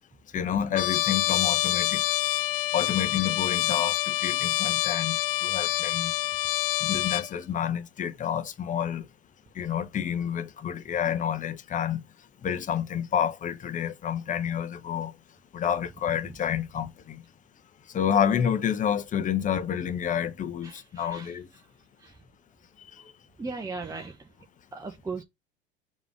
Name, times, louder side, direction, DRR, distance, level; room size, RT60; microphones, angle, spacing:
voice 1, 0.3-2.0 2.7-6.1 6.8-9.0 9.5-12.0 12.4-15.1 15.5-17.2 17.9-21.5 22.8-22.9, left 9 dB, 25° left, 0.9 m, -29 dB
Trumpet, 0.8-7.3, left 16 dB, 60° left, 0.5 m, -26 dB
voice 2, 20.6-21.4 22.0-22.2 23.4-24.3 24.7-25.2, right 4 dB, 10° right, 0.9 m, -37 dB
7.0 x 3.1 x 4.9 m
figure-of-eight pair, 75°, 31 cm